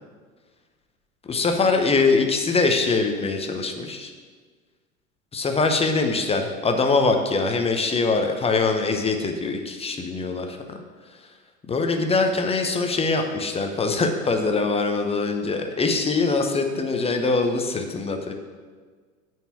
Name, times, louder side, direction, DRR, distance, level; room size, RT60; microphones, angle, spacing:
voice 1, 1.3-4.1 5.3-10.8 11.7-18.3, left 3 dB, 15° left, 4 dB, 0.8 m, -23 dB
8.9 x 4.6 x 7.2 m, 1.5 s
figure-of-eight pair, 85°, 41 cm